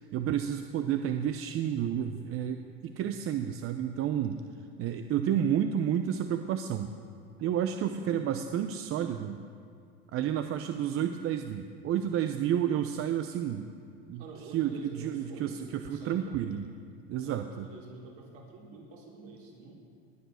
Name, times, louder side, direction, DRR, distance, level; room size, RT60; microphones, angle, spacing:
voice 1, 0.1-4.4 4.8-6.9 7.4-9.4 10.1-13.7 14.1-14.2 14.5-16.7 17.1-17.7, right 9 dB, 45° right, 7 dB, 0.7 m, -30 dB
voice 2, 7.9-8.3 14.2-16.7 17.2-19.7, right 3 dB, 70° right, -3 dB, 4.5 m, -47 dB
19.5 x 8.1 x 6.4 m, 2.3 s
supercardioid pair, 100°, 30 cm